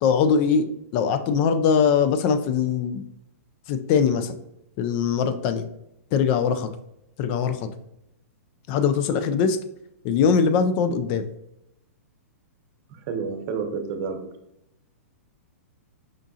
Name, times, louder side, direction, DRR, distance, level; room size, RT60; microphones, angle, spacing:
voice 1, 0.0-0.7 0.9-3.0 3.7-4.4 4.8-5.7 6.1-6.7 7.2-7.7 8.7-9.6 10.0-11.3, left 6 dB, 40° left, 10 dB, 0.4 m, -21 dB
voice 2, 12.9-14.2, right 5 dB, 45° right, 6 dB, 0.8 m, -29 dB
5.0 x 3.6 x 2.7 m, 0.82 s
hypercardioid pair, 125°, 8 cm